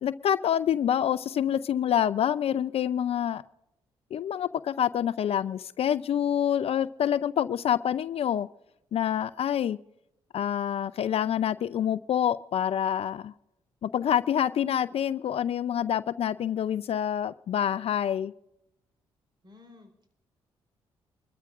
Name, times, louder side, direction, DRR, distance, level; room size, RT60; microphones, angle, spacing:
voice 1, 0.0-3.4 4.1-8.5 8.9-9.8 10.3-13.3 13.8-18.3, left 9 dB, 60° left, 15 dB, 0.5 m, -27 dB
voice 2, 19.4-20.1, left 3 dB, 40° right, 6 dB, 4.0 m, -53 dB
25.0 x 13.0 x 2.5 m, 0.81 s
hypercardioid pair, 50°, 12 cm